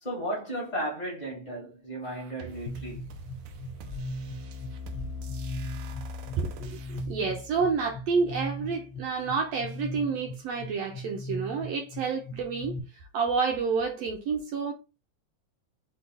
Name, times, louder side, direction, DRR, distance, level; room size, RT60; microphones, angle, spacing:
voice 1, 0.0-3.0, right 1 dB, 35° left, 0.6 m, -34 dB
sound 1, 2.0-7.1, right 3 dB, 90° right, 2.3 m, -45 dB
sound 2, 2.7-12.8, left 1 dB, 80° left, 2.0 m, -38 dB
voice 2, 6.4-14.7, right 5 dB, 75° right, 1.6 m, -29 dB
6.2 x 2.3 x 3.4 m
omnidirectional pair, 3.6 m